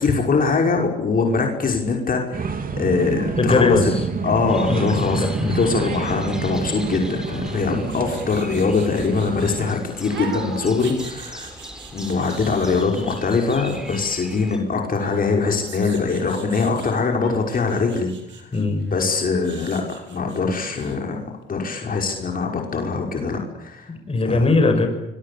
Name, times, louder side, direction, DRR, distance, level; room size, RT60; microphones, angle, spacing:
voice 1, 0.0-3.8 4.2-11.6 11.9-18.1 18.4-18.5 18.9-23.9 24.2-24.5, left 4 dB, 45° left, 2 dB, 5.7 m, -22 dB
sound 1, 2.3-9.8, right 5 dB, 45° right, 3.9 m, -28 dB
voice 2, 3.4-4.0 4.7-5.6 18.5-18.9 23.9-24.9, left 3 dB, 30° left, 7 dB, 6.3 m, -20 dB
sound 2, 4.5-14.6, equal, 5° right, 5.2 m, -40 dB
sound 3, 6.5-9.6 10.1-14.1 14.9-16.9 17.2-21.0 21.3-21.4, right 6 dB, 70° right, 7.1 m, -40 dB
25.5 x 23.0 x 8.6 m, 0.90 s
cardioid pair, 90°, 20 cm